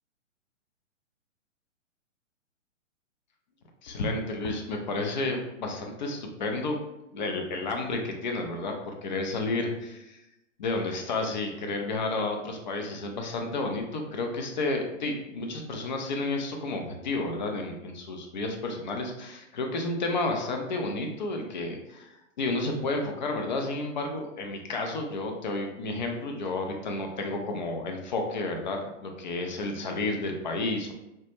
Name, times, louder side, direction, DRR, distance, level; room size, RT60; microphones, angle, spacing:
voice 1, 3.8-6.8 7.1-10.2 10.6-22.1 22.4-30.9, left 2 dB, 40° left, 3 dB, 0.4 m, -31 dB
2.1 x 2.0 x 2.9 m, 0.91 s
figure-of-eight pair, 120°, 38 cm